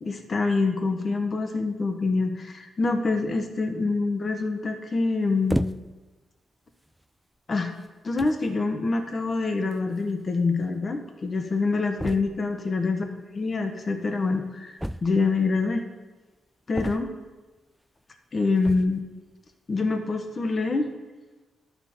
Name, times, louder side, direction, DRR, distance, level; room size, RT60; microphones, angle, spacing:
voice 1, 0.0-5.7 7.5-7.7 8.0-13.0 13.3-15.8 16.7-17.1 18.3-19.0 19.7-20.9, left 3 dB, 40° left, 5 dB, 1.2 m, -26 dB
sound 1, 5.5-6.1 6.9-7.0 7.8-7.9 8.2-8.5 9.7-9.8 10.0-10.1 10.3-10.4 12.0-12.5 14.8-15.5 16.7-17.4 18.6-19.0, equal, 5° right, 0.4 m, -32 dB
11.0 x 7.0 x 4.4 m, 1.2 s
cardioid pair, 80°, 0 cm